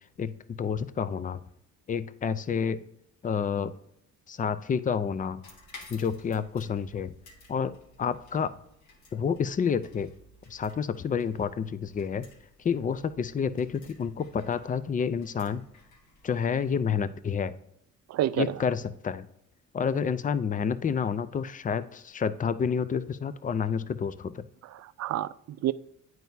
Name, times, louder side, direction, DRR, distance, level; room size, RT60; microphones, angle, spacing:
voice 1, 0.2-1.4 1.9-2.8 3.2-3.7 4.3-5.4 5.9-7.1 7.5-7.7 8.0-8.5 9.1-10.1 10.5-12.3 12.6-15.6 16.2-17.5 18.4-19.3 19.7-24.4, left 6 dB, 25° left, 14 dB, 0.4 m, -29 dB
sound 1, 5.4-16.8, left 2 dB, 75° left, 1.8 m, -55 dB
voice 2, 18.1-18.6 24.7-25.7, right 13 dB, 60° right, 16 dB, 0.4 m, -29 dB
9.1 x 4.6 x 2.7 m, 0.77 s
cardioid pair, 90°, 30 cm